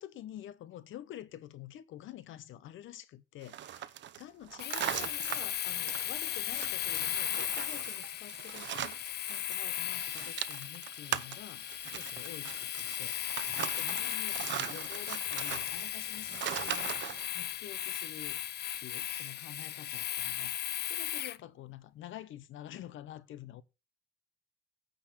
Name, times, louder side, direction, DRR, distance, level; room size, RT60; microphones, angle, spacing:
voice 1, 0.0-13.2 13.6-17.1 17.3-18.4 18.8-23.6, left 12 dB, 80° left, 0.9 m, -48 dB
sound 1, 3.4-9.6 9.8-17.3, right 11 dB, 65° right, 0.7 m, -40 dB
Domestic sounds home sounds, 4.6-21.4, left 12 dB, 55° left, 0.4 m, -36 dB
9.0 x 4.0 x 6.4 m
cardioid pair, 90°, 20 cm